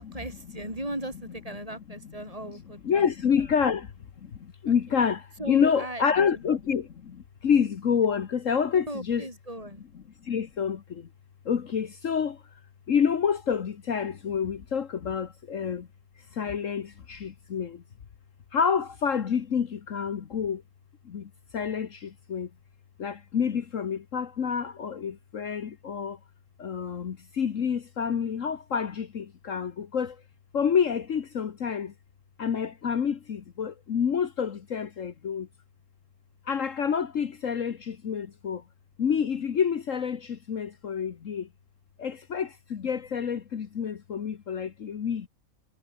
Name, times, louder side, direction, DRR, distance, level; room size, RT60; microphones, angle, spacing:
voice 1, 0.0-3.1 3.4-3.5 4.7-4.8 5.4-6.4 8.9-9.8, right 1 dB, 25° right, 7.6 m, -37 dB
voice 2, 2.8-3.9 4.2-9.2 10.2-11.1 11.4-12.4 12.9-15.9 16.3-17.8 18.5-20.6 21.0-22.5 23.0-26.2 26.6-30.2 30.5-31.9 32.4-35.5 36.5-38.6 39.0-41.5 42.0-45.3, left 7 dB, 60° left, 1.5 m, -28 dB
omnidirectional pair, 1.5 m